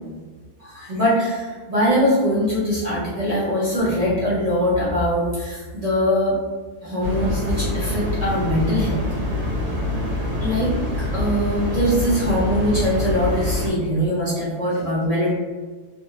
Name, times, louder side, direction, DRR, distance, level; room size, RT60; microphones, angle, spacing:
voice 1, 0.6-6.4 6.8-9.0 10.4-10.7 11.1-15.3, equal, 30° right, -9 dB, 0.7 m, -22 dB
sound 1, 7.0-13.7, left 1 dB, 80° right, 1.3 m, -25 dB
3.4 x 2.0 x 2.9 m, 1.4 s
omnidirectional pair, 1.8 m